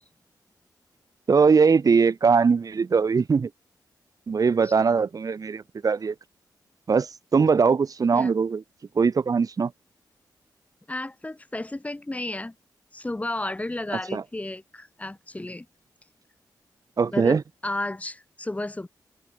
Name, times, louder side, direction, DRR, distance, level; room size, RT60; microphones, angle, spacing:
voice 1, 1.3-3.5 4.3-6.1 6.9-8.6 8.9-9.7 14.1-14.2 17.0-17.4, right 5 dB, 50° right, 1.1 m, -21 dB
voice 2, 4.6-5.0 8.1-8.3 10.9-12.5 12.9-15.7 17.1-18.9, left 2 dB, 20° left, 4.0 m, -33 dB
cardioid pair, 70°, 8 cm